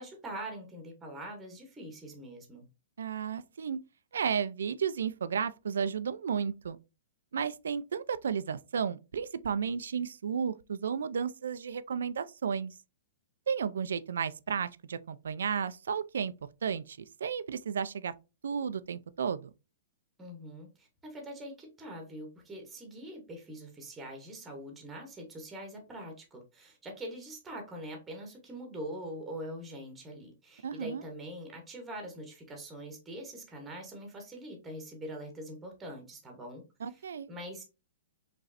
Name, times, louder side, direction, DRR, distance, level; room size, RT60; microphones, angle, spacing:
voice 1, 0.0-2.7 20.2-37.6, right 1 dB, 10° right, 0.9 m, -43 dB
voice 2, 3.0-3.8 4.1-6.8 7.3-12.7 13.5-16.3 16.6-18.1 18.4-19.5 30.6-31.0 36.8-37.3, right 7 dB, 90° right, 0.4 m, -33 dB
5.1 x 3.1 x 2.5 m
hypercardioid pair, 165°, 0 cm